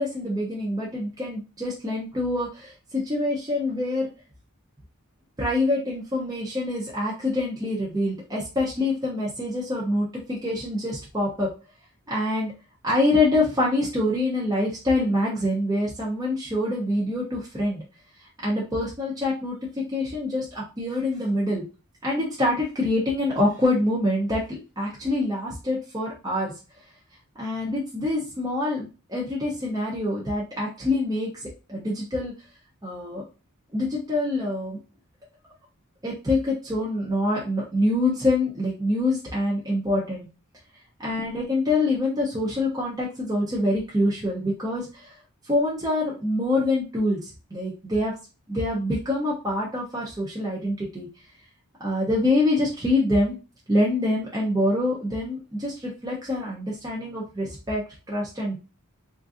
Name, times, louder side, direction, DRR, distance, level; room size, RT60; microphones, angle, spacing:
voice 1, 0.0-4.1 5.4-11.5 12.1-12.5 12.8-17.8 18.4-21.6 22.0-26.5 27.4-32.3 32.8-33.2 33.7-34.8 36.0-40.3 41.0-45.1 45.4-48.1 48.5-51.1 51.8-53.4 53.7-57.8 58.1-58.6, left 1 dB, 15° right, -5 dB, 0.6 m, -25 dB
3.7 x 2.5 x 2.4 m, 0.32 s
head